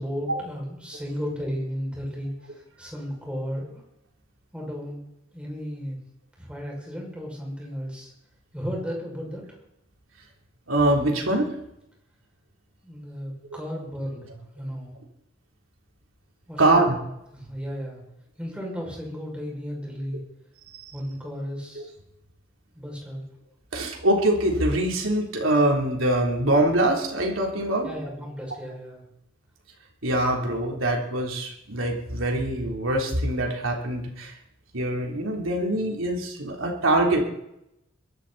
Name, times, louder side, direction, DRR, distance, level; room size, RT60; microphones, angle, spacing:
voice 1, 0.0-3.8 4.5-5.0 5.3-6.0 6.4-8.1 8.5-9.4 12.8-14.9 16.5-16.8 17.3-18.0 18.4-20.2 20.9-21.9 22.7-23.2 27.8-29.0, equal, 5° right, -2 dB, 6.1 m, -34 dB
voice 2, 10.7-11.5 16.6-17.0 20.8-20.9 23.7-27.9 30.0-34.3 34.7-37.3, right 1 dB, 75° right, 0 dB, 3.6 m, -23 dB
22.5 x 12.5 x 4.2 m, 0.81 s
head